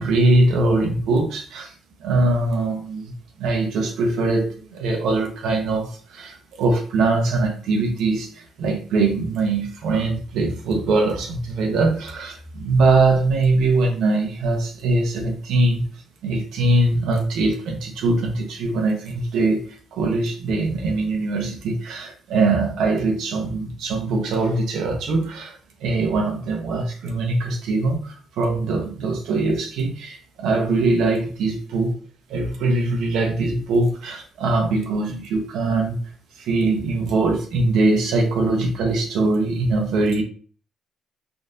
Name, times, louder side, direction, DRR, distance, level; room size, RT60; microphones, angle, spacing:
voice 1, 0.0-1.7 2.0-3.1 3.4-15.9 16.2-31.9 32.3-36.0 36.4-40.2, right 2 dB, 85° right, 2 dB, 0.6 m, -22 dB
3.6 x 2.5 x 2.5 m, 0.41 s
cardioid pair, 90°, 0 cm